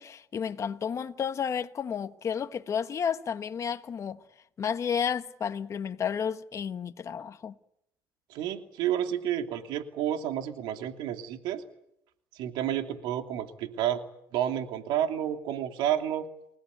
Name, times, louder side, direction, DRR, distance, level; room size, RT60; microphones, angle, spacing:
voice 1, 0.0-4.2 4.6-7.5, left 7 dB, 40° left, 1.3 m, -32 dB
voice 2, 8.3-11.6 12.3-14.0 14.3-16.3, right 10 dB, 85° right, 2.8 m, -30 dB
29.5 x 17.0 x 9.5 m
cardioid pair, 115°, 8 cm